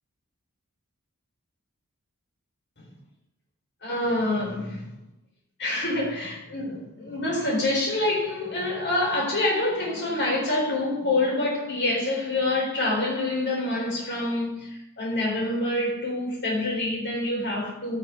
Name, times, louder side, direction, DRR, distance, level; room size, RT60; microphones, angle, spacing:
voice 1, 3.8-4.9 5.6-18.0, left 2 dB, 55° left, 4.2 m, -26 dB
14.5 x 6.1 x 3.6 m
head